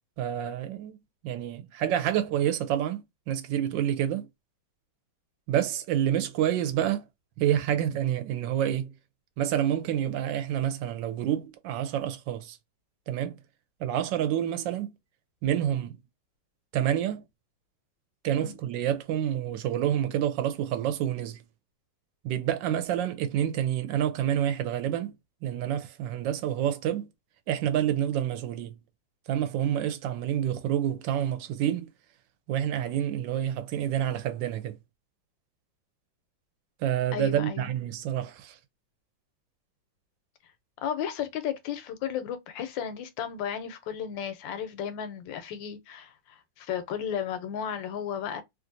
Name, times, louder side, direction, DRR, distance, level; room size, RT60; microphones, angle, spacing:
voice 1, 0.2-1.0 1.2-4.3 5.5-7.1 7.4-8.9 9.4-12.6 13.1-13.4 13.8-14.9 15.4-16.0 16.7-17.2 18.2-21.4 22.2-25.1 25.4-27.1 27.5-28.8 29.3-31.9 32.5-34.8 36.8-38.6, right 10 dB, 80° right, 1.2 m, -28 dB
voice 2, 37.1-37.7 40.8-48.4, left 8 dB, 85° left, 1.3 m, -34 dB
3.1 x 2.5 x 2.6 m
omnidirectional pair, 2.0 m